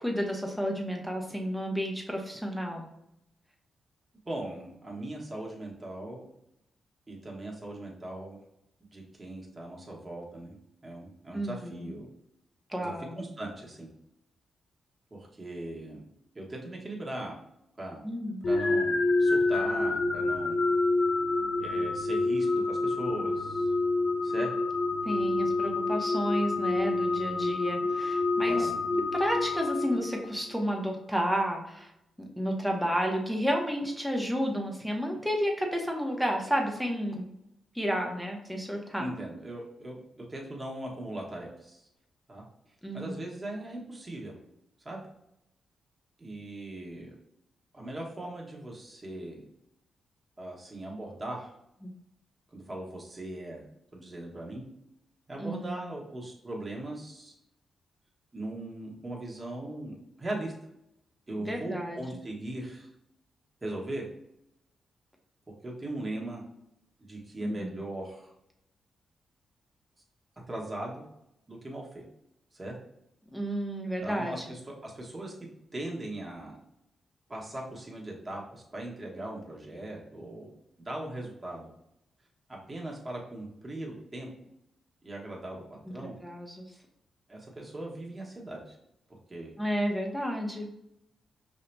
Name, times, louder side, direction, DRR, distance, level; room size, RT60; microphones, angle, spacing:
voice 1, 0.0-2.9 11.3-11.9 12.7-13.2 18.0-18.5 25.0-28.7 29.1-31.9 32.2-37.3 37.7-39.1 42.8-43.2 51.8-51.9 55.4-55.9 61.5-62.0 67.4-67.8 73.3-74.4 85.9-86.6 89.6-90.7, equal, ahead, 1 dB, 0.9 m, -31 dB
voice 2, 4.2-6.2 7.1-8.4 8.9-10.6 10.8-12.1 12.8-13.9 15.1-16.1 16.3-17.4 17.8-18.0 18.5-20.6 21.6-23.7 24.2-24.5 28.5-28.7 39.0-41.8 42.3-42.4 42.9-44.3 44.8-45.0 46.2-47.1 47.7-49.4 50.4-51.5 52.5-53.6 53.9-54.6 55.3-57.3 58.3-60.5 61.3-62.9 63.6-64.1 65.6-66.4 67.0-68.3 70.5-71.0 71.5-72.0 72.5-72.7 74.0-75.3 75.7-76.6 77.3-80.5 80.8-81.7 82.5-84.3 85.0-86.1 87.3-88.8 89.3-89.5, right 1 dB, 25° right, -2 dB, 1.2 m, -39 dB
sound 1, 18.4-30.4, left 2 dB, 65° left, 0.6 m, -27 dB
5.5 x 2.8 x 2.2 m, 0.82 s
cardioid pair, 75°, 0 cm